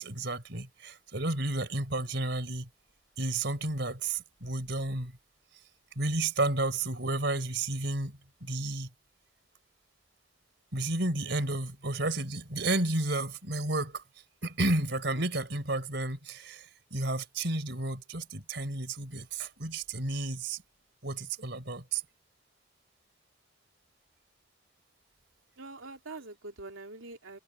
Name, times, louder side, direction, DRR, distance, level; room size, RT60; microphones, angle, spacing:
voice 1, 0.0-2.7 3.2-5.2 6.0-8.9 10.7-14.0 14.4-20.6 21.0-22.0, right 2 dB, 55° right, 4.5 m, -32 dB
voice 2, 14.9-15.3 25.6-27.4, right 2 dB, 85° right, 3.0 m, -45 dB
head